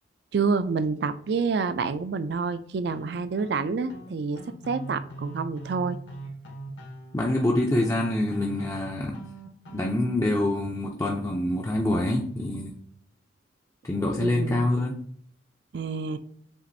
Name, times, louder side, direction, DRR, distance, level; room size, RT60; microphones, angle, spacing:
voice 1, 0.3-4.4 4.7-6.0 14.1-14.7 15.7-16.2, right 4 dB, 60° right, 12 dB, 0.4 m, -28 dB
sound 1, 2.9-10.3, right 2 dB, 65° left, 0.9 m, -42 dB
voice 2, 7.1-9.2 9.7-12.7 13.8-15.0, left 1 dB, 15° left, -1 dB, 0.4 m, -26 dB
7.0 x 2.5 x 2.6 m, 0.63 s
head